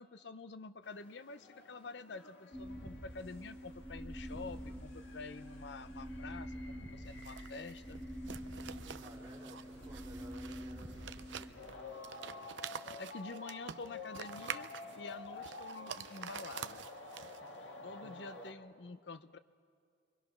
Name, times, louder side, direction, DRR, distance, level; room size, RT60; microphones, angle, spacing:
voice 1, 0.0-8.0 13.0-14.7 15.0-16.8 17.8-19.4, left 4 dB, 70° left, 12 dB, 0.6 m, -48 dB
sound 1, 0.8-18.5, left 3 dB, 90° left, 1.7 m, -52 dB
sound 2, 2.5-11.5, equal, 40° left, 6.1 m, -46 dB
sound 3, 7.1-17.6, right 8 dB, 85° right, 0.6 m, -48 dB
voice 2, 8.8-12.4 17.4-17.5 17.8-18.5, right 1 dB, 20° right, -5 dB, 3.1 m, -56 dB
28.0 x 23.5 x 6.2 m, 2.2 s
head